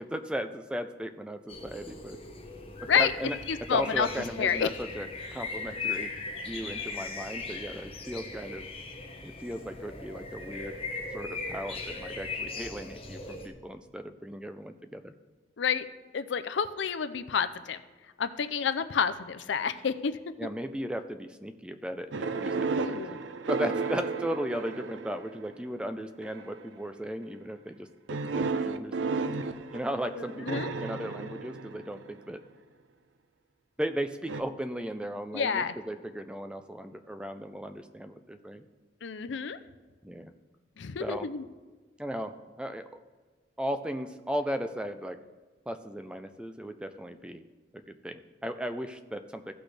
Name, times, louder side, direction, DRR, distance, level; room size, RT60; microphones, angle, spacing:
voice 1, 0.0-2.2 2.8-3.4 3.7-6.1 6.4-8.7 9.2-10.8 11.1-15.1 20.4-23.2 23.5-29.5 29.7-32.4 33.8-38.6 40.0-40.3 41.0-41.3 42.0-42.9 43.6-45.2 45.7-47.4 47.9-49.5, equal, 5° right, 8 dB, 0.3 m, -36 dB
sound 1, 1.5-13.5, left 4 dB, 30° left, 1.2 m, -39 dB
voice 2, 3.5-4.1 4.4-4.7 15.6-15.8 16.1-17.8 18.2-20.1 22.5-23.2 30.1-30.7 35.3-35.7 39.0-39.6 40.8-41.4, left 6 dB, 75° left, 12 dB, 0.5 m, -29 dB
sound 2, 22.1-25.5 26.2-26.7 28.1-32.2 34.3-34.4, right 4 dB, 85° right, 0.5 m, -33 dB
15.5 x 6.1 x 3.3 m, 1.4 s
head